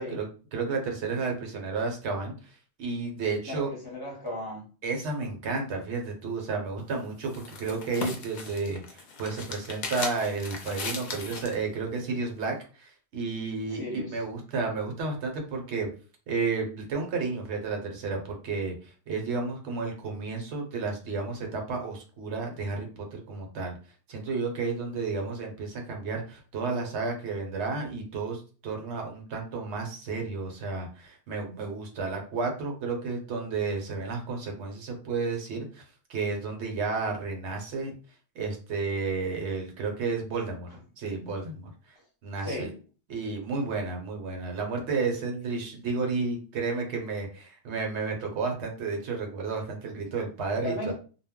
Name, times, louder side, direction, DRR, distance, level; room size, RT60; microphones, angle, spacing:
voice 1, 0.0-3.7 4.8-13.8 14.1-15.9 16.3-23.7 24.1-35.8 36.1-37.9 38.3-40.7 41.0-42.0 42.2-42.7 43.1-50.9, right 4 dB, 75° right, 2 dB, 1.0 m, -32 dB
voice 2, 3.5-4.7 13.7-14.2 42.4-42.8 50.6-50.9, left 1 dB, 20° left, -2 dB, 0.8 m, -35 dB
sound 1, 6.8-11.6, left 4 dB, 50° left, 0.6 m, -38 dB
2.2 x 2.0 x 3.5 m, 0.37 s
omnidirectional pair, 1.1 m